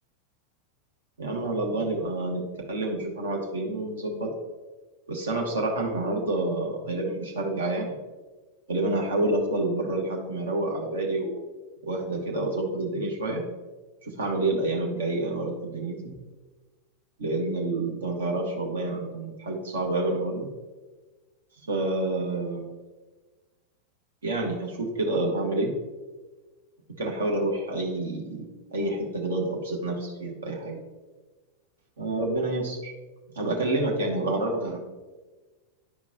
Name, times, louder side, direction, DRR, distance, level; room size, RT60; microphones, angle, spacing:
voice 1, 1.2-2.4 2.7-4.3 5.1-7.9 8.7-11.4 11.8-13.4 14.1-16.2 17.2-20.5 21.6-22.6 24.2-25.7 27.0-28.4 28.7-30.8 32.0-32.9 33.3-34.8, right 2 dB, 65° right, 0 dB, 1.3 m, -28 dB
10.0 x 5.1 x 2.7 m, 1.3 s
figure-of-eight pair, 90°, 0 cm